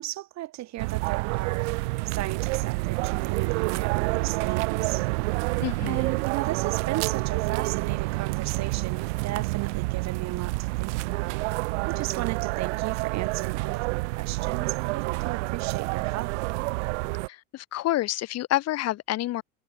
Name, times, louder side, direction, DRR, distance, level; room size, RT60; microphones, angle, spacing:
voice 1, 0.0-5.4 5.9-11.4 11.9-16.4, right 15 dB, 50° right, 5.5 m, -35 dB
sound 1, 0.8-17.3, right 26 dB, 80° right, 0.9 m, -28 dB
voice 2, 5.6-6.1 17.3-19.4, left 15 dB, 45° left, 1.5 m, -28 dB
supercardioid pair, 120°, 35 cm